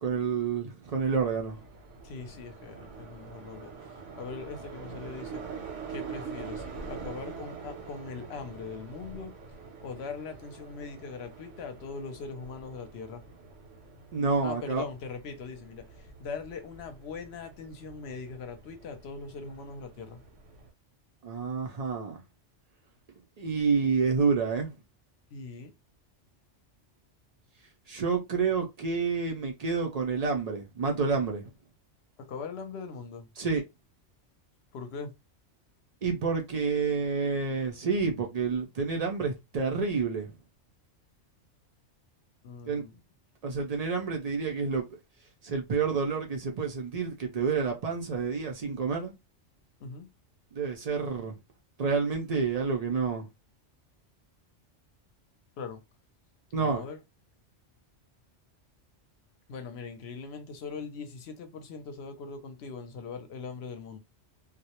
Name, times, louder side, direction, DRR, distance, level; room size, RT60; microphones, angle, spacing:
voice 1, 0.0-1.6 14.1-14.8 21.2-22.2 23.4-24.7 27.9-31.4 33.4-33.6 36.0-40.3 42.7-42.8 43.4-44.9 45.4-49.1 50.5-51.3 51.8-53.3 56.5-56.8, right 5 dB, 55° right, 0.4 m, -29 dB
sound 1, 0.8-20.7, right 5 dB, 80° right, 1.0 m, -45 dB
voice 2, 2.0-5.4 5.9-9.3 9.8-13.2 14.4-20.2 25.3-25.7 32.2-33.3 34.7-35.1 42.4-43.0 49.8-50.1 55.6-55.8 56.6-57.0 59.5-64.0, left 5 dB, 65° left, 0.8 m, -41 dB
2.3 x 2.0 x 2.8 m
omnidirectional pair, 1.2 m